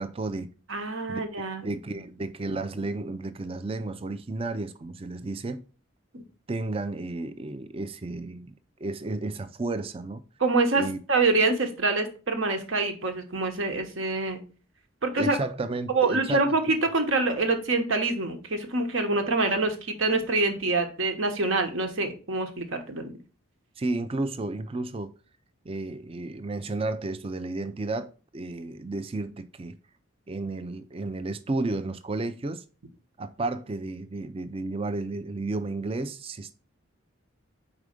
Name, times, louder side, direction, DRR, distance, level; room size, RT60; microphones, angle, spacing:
voice 1, 0.0-0.5 1.1-5.6 6.5-8.5 8.8-10.2 10.8-11.0 15.2-16.4 23.8-25.1 25.6-29.7 30.3-32.6 33.2-36.5, right 2 dB, 25° right, 0.4 m, -32 dB
voice 2, 0.7-1.7 6.1-6.2 10.4-10.8 11.1-14.4 15.0-15.4 15.9-23.1, right 3 dB, 70° right, 1.1 m, -25 dB
4.9 x 4.1 x 5.0 m
head